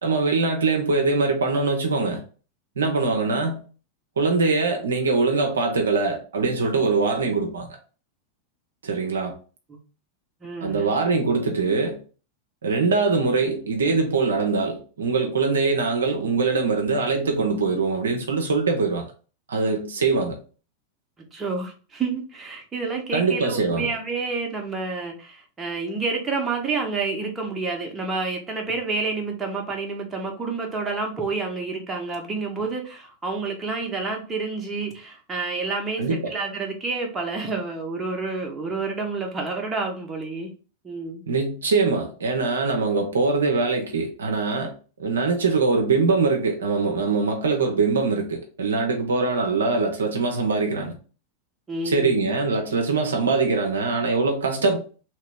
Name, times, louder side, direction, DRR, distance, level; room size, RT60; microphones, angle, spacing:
voice 1, 0.0-2.2 2.8-3.6 4.2-7.7 8.8-9.3 10.6-12.0 12.6-19.0 19.5-20.4 23.1-23.9 36.0-36.3 41.3-44.7 45.0-51.0 51.8-54.8, right 4 dB, 70° right, 0.6 m, -23 dB
voice 2, 10.4-10.9 21.3-40.5 40.8-41.2 51.7-52.2, right 4 dB, 15° right, 0.9 m, -29 dB
2.9 x 2.9 x 3.4 m
figure-of-eight pair, 90°, 0 cm